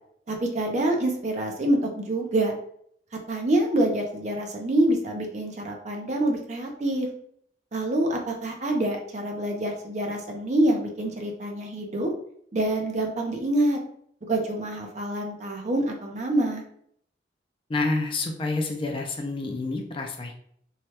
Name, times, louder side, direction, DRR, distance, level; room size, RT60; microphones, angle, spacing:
voice 1, 0.3-2.5 3.3-7.1 7.7-12.1 12.5-13.8 14.3-16.6, right 1 dB, 40° right, 1 dB, 0.6 m, -26 dB
voice 2, 17.7-20.3, left 3 dB, 30° left, 2 dB, 0.4 m, -28 dB
3.2 x 2.2 x 2.8 m, 0.66 s
head